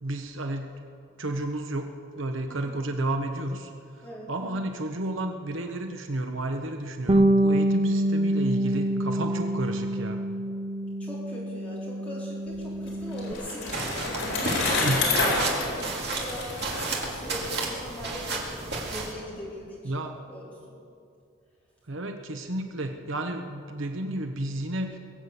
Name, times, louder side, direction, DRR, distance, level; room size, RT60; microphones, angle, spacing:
voice 1, 0.0-0.7 1.2-1.9 2.2-3.7 4.3-10.2 14.8-15.0 15.3-15.4 19.8-20.2 21.9-25.0, right 1 dB, 70° right, 5 dB, 1.0 m, -32 dB
Bass guitar, 7.1-13.3, right 1 dB, 25° right, 0.5 m, -26 dB
voice 2, 11.0-16.5 16.8-19.9 20.3-20.7, equal, 5° left, -7 dB, 4.2 m, -40 dB
Bicycle, 12.6-17.6, left 3 dB, 65° left, 4.6 m, -29 dB
sound 1, 13.7-19.1, right 3 dB, 50° right, 2.2 m, -32 dB
21.5 x 7.4 x 8.1 m, 2.4 s
head